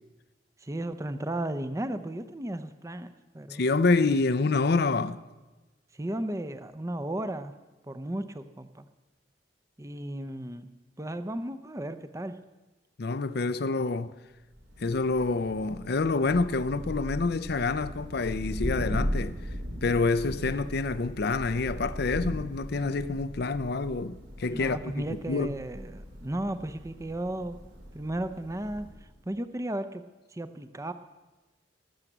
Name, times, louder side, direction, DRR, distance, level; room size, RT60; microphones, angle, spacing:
voice 1, 0.6-3.6 5.9-7.5 7.9-8.8 9.8-10.7 11.0-12.4 24.5-27.6 27.9-28.9 29.2-30.0 30.3-30.9, right 1 dB, 15° right, 0.6 m, -34 dB
voice 2, 3.5-5.2 13.0-14.1 14.8-19.4 19.8-25.5, left 3 dB, 60° left, 0.6 m, -27 dB
Thunder, 14.5-29.1, equal, 80° right, 3.3 m, -38 dB
18.5 x 7.4 x 8.0 m
head